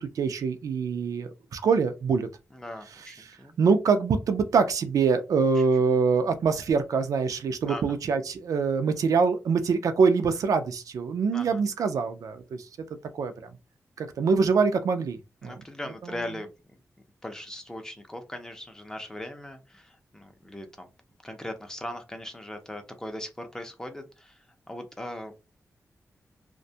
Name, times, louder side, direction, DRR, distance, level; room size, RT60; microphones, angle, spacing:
voice 1, 0.0-2.3 3.2-12.7 13.1-13.5 14.0-15.6 16.0-16.2, right 5 dB, 85° right, 0.4 m, -24 dB
voice 2, 2.5-3.5 7.7-7.8 11.3-11.6 15.4-16.5 17.2-20.9 21.2-25.3, left 1 dB, 10° left, 0.5 m, -39 dB
2.5 x 2.2 x 2.7 m
wide cardioid pair, 165°, 6 cm